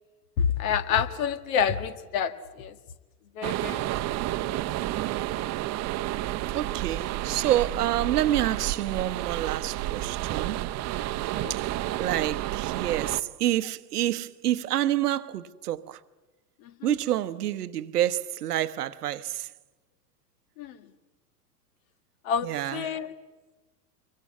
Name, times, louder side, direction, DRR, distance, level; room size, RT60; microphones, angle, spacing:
voice 1, 0.4-2.7 3.4-3.8 11.3-11.5 16.8-16.9 20.6-20.8 22.3-23.1, left 7 dB, 55° left, 1.7 m, -28 dB
sound 1, 3.4-13.2, right 15 dB, 35° right, 0.8 m, -31 dB
voice 2, 6.5-10.6 11.5-11.6 11.9-16.0 16.8-19.5 22.4-23.0, right 13 dB, 70° right, 1.0 m, -28 dB
25.0 x 23.0 x 8.3 m
figure-of-eight pair, 80°, 48 cm